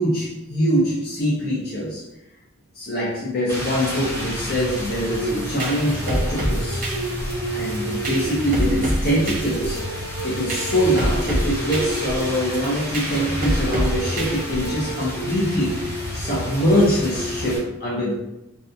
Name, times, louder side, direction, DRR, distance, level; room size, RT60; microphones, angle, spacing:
voice 1, 0.0-2.0 2.8-6.8 7.5-9.8 10.2-15.8 16.1-18.1, equal, 45° left, -6 dB, 0.5 m, -23 dB
Rain, 3.5-17.6, equal, 10° left, 0.7 m, -29 dB
sound 1, 5.3-15.0, equal, 40° right, 0.5 m, -27 dB
2.6 x 2.2 x 2.6 m, 0.89 s
head